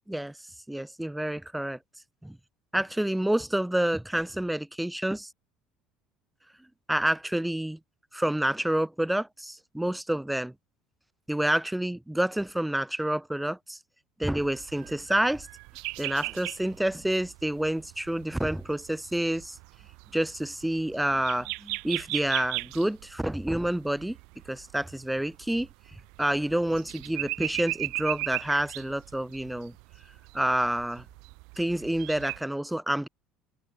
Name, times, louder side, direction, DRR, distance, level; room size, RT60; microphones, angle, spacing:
voice 1, 0.7-1.8 2.2-2.4 2.7-5.3 6.9-7.8 8.1-10.5 11.3-13.8 14.2-15.5 16.0-19.6 20.1-24.2 24.5-25.7 26.2-29.7 30.3-31.0 31.6-33.1, right 1 dB, 5° right, 1.2 m, -28 dB
sound 1, 14.4-32.4, right 28 dB, 70° right, 2.1 m, -38 dB
cardioid pair, 165°, 0 cm